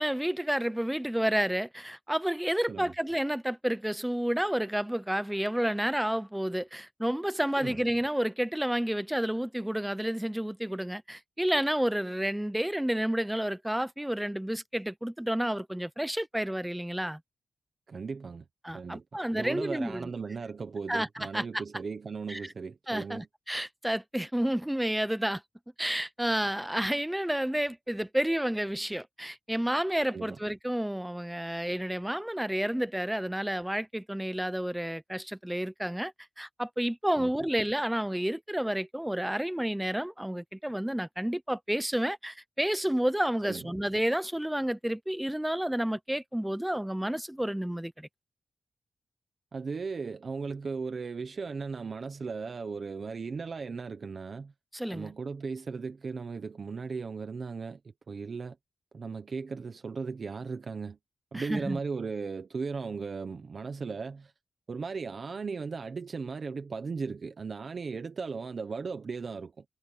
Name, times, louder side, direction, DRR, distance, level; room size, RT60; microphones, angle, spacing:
voice 1, 0.0-17.2 18.6-20.1 20.9-21.4 22.3-22.4 22.9-25.4 25.8-36.1 36.4-48.1 54.7-55.1 61.3-61.8, right 1 dB, 5° right, 0.6 m, -30 dB
voice 2, 17.9-18.4 18.7-19.0 19.3-23.3 30.1-30.4 37.2-37.3 43.4-43.7 49.5-54.5 54.9-57.8 58.1-58.6 58.9-61.0 61.3-64.3 64.7-69.6, right 5 dB, 40° right, 0.9 m, -37 dB
wide cardioid pair, 165°, 0 cm